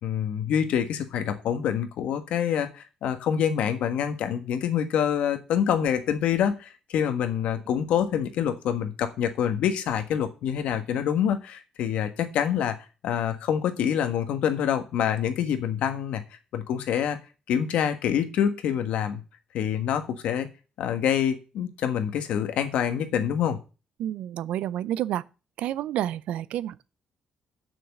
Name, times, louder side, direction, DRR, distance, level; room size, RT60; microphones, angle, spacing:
voice 1, 0.0-12.8 13.0-16.2 16.5-17.2 17.5-19.2 19.5-20.5 20.8-23.6, left 9 dB, 75° left, 1.4 m, -26 dB
voice 2, 24.0-25.2 25.6-26.8, right 12 dB, 85° right, 0.5 m, -29 dB
7.3 x 6.2 x 7.8 m
cardioid pair, 175°, 2 cm